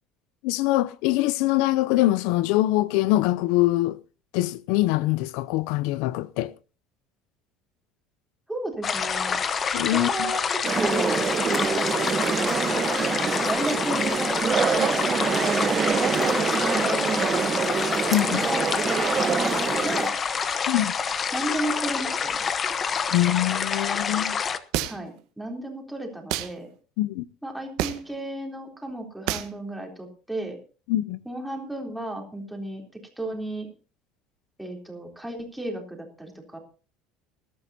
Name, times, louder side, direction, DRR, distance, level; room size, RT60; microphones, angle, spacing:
voice 1, 0.4-4.0 4.3-6.5 9.7-10.3 18.1-18.5 20.7-20.9 23.1-24.4 27.0-27.2 30.9-31.2, left 16 dB, 75° left, 0.5 m, -23 dB
voice 2, 8.5-9.4 9.9-11.2 12.0-12.8 13.5-14.3 14.7-15.3 15.9-18.9 19.2-20.2 21.3-22.4 24.8-26.7 27.4-30.6 31.3-33.7 34.6-36.6, right 1 dB, 5° right, 3.6 m, -34 dB
sound 1, 8.8-24.6, left 6 dB, 30° left, 1.0 m, -27 dB
sound 2, 10.6-20.1, right 6 dB, 25° right, 1.1 m, -26 dB
sound 3, 24.7-25.2 26.3-26.5 27.8-28.1 29.3-29.5, right 13 dB, 70° right, 1.4 m, -28 dB
20.5 x 12.5 x 2.8 m
cardioid pair, 145°, 0 cm